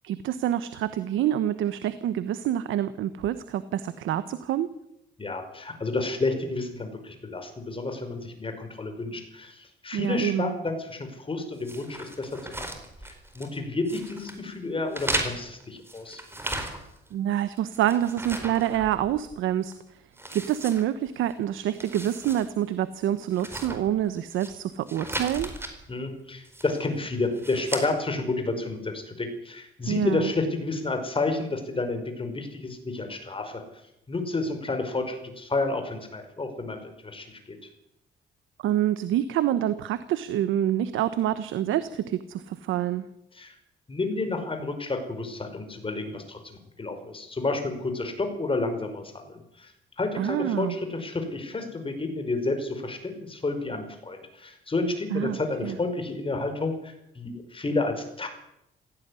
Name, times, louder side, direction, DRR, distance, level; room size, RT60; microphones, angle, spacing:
voice 1, 0.0-4.7 9.9-10.5 17.1-19.7 20.3-25.5 29.9-30.3 38.6-43.0 50.1-50.8 55.1-55.8, right 11 dB, 85° right, 13 dB, 1.1 m, -27 dB
voice 2, 5.2-12.3 12.6-12.7 13.0-16.2 25.9-33.6 34.1-37.6 43.3-43.6 43.9-49.7 50.0-58.3, left 3 dB, 25° left, 6 dB, 5.3 m, -30 dB
sound 1, 11.6-13.6 13.9-14.4 14.9-17.1 17.4-19.3 19.7-19.8 20.2-21.3 21.7-22.5 22.8-22.9 23.3-24.5 24.9-25.7 26.4-26.9 27.3-27.9, right 1 dB, 10° right, 4.5 m, -36 dB
17.0 x 15.5 x 9.7 m, 0.83 s
cardioid pair, 90°, 20 cm